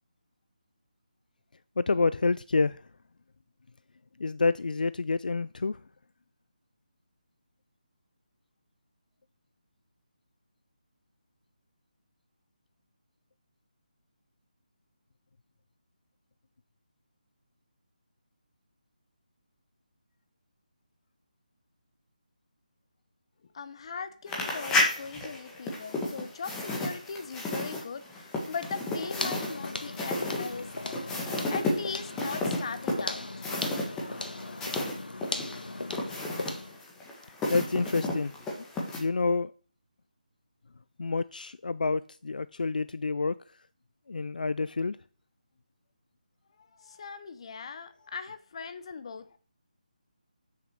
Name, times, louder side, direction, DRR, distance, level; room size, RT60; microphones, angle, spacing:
voice 1, 1.8-2.8 4.2-5.8 37.5-38.3 39.0-39.5 41.0-43.3 44.1-45.0, left 4 dB, 75° left, 0.4 m, -28 dB
voice 2, 23.5-33.2 46.8-49.4, left 5 dB, 40° left, 0.9 m, -39 dB
sound 1, 24.3-34.9 35.2-39.0, left 2 dB, 10° left, 1.6 m, -32 dB
sound 2, 28.6-36.8, left 2 dB, 90° left, 1.6 m, -38 dB
7.3 x 6.7 x 6.2 m
figure-of-eight pair, 165°, 5 cm